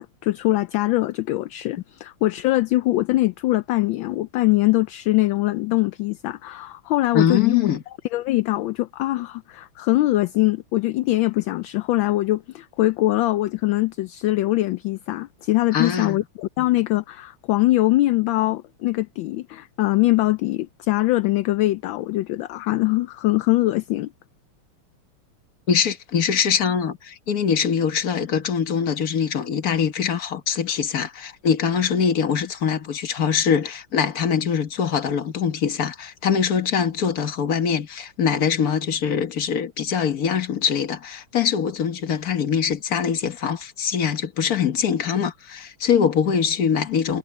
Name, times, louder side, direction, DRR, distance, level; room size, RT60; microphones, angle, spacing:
voice 1, 0.0-7.7 8.1-24.1, left 17 dB, 75° left, 1.2 m, -22 dB
voice 2, 7.1-7.8 15.7-16.2 25.7-47.2, left 7 dB, 45° left, 1.7 m, -23 dB
omnidirectional pair, 2.4 m